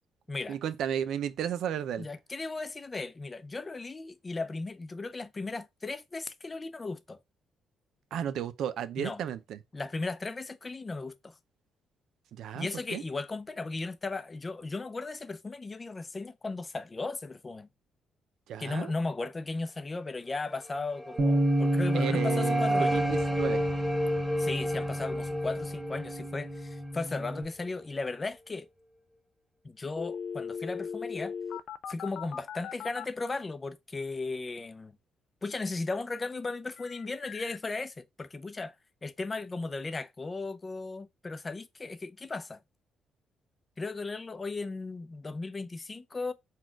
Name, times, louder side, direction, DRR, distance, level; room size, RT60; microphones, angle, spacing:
voice 1, 0.5-2.1 8.1-9.6 12.3-13.0 18.5-18.9 21.9-23.6, right 9 dB, 75° right, 0.5 m, -33 dB
voice 2, 2.0-7.2 9.0-9.2 9.7-11.3 12.5-17.7 18.6-23.0 24.4-28.7 29.6-31.3 31.9-34.9 35.4-38.7 39.0-42.6 43.8-46.3, left 3 dB, 25° left, 0.6 m, -36 dB
sound 1, 20.7-27.7, equal, 10° right, 0.9 m, -33 dB
Bass guitar, 21.2-27.4, equal, 45° right, 1.1 m, -30 dB
sound 2, 29.9-33.1 36.8-37.6, left 7 dB, 70° left, 0.3 m, -38 dB
4.2 x 2.4 x 4.4 m
cardioid pair, 90°, 0 cm